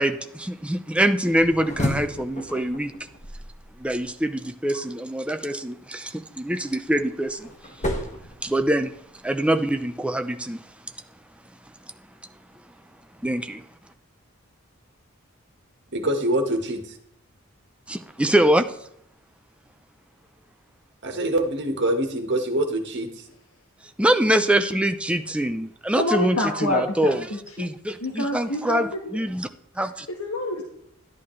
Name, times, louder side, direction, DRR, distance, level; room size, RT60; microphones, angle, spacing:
voice 1, 0.0-2.9 3.8-7.8 8.4-8.9 9.2-10.7 13.2-13.7 17.9-18.8 24.0-27.3 27.6-29.5 29.8-30.1, right 1 dB, 5° right, 0.6 m, -24 dB
sound 1, 1.2-4.3 6.6-9.1, left 1 dB, 35° left, 1.6 m, -33 dB
voice 2, 15.9-16.8 21.0-23.1, right 1 dB, 55° right, 1.6 m, -24 dB
voice 3, 26.0-27.7 28.0-29.2 30.2-30.6, left 1 dB, 80° left, 1.5 m, -27 dB
11.5 x 11.0 x 3.2 m
head